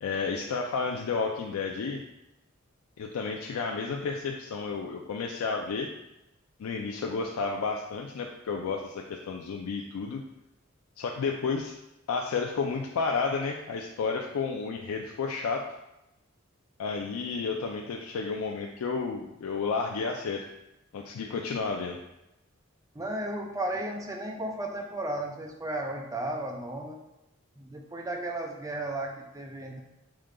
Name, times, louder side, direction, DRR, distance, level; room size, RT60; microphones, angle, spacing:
voice 1, 0.0-2.0 3.0-5.9 6.6-10.2 11.0-11.7 12.1-15.6 16.8-20.4 20.9-22.0, left 4 dB, 90° left, 2 dB, 0.4 m, -31 dB
voice 2, 22.9-27.0 27.6-29.8, right 1 dB, 15° right, 1 dB, 0.4 m, -34 dB
4.9 x 2.2 x 3.7 m, 0.91 s
head